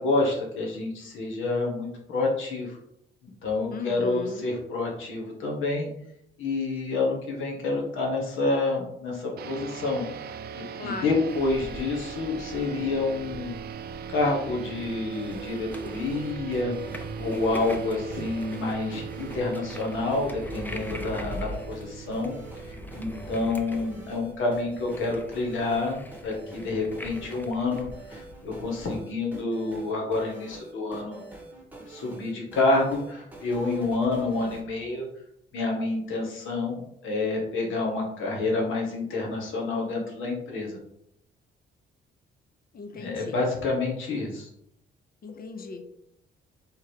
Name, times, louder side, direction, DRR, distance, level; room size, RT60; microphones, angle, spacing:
voice 1, 0.0-2.8 3.2-5.9 6.4-13.5 13.9-16.7 17.2-22.4 22.7-31.2 31.9-35.1 35.5-40.8 42.9-44.5, left 3 dB, 80° left, -1 dB, 1.5 m, -28 dB
voice 2, 3.7-4.5 10.7-11.2 42.7-43.4 45.2-45.9, left 4 dB, 50° left, 7 dB, 0.7 m, -37 dB
sound 1, 9.4-24.2, right 8 dB, 55° right, 0.4 m, -40 dB
sound 2, 11.3-28.9, left 1 dB, 10° left, 0.6 m, -42 dB
sound 3, 15.0-34.6, right 2 dB, 10° right, 1.3 m, -45 dB
3.7 x 3.1 x 4.5 m, 0.75 s
cardioid pair, 90°, 20 cm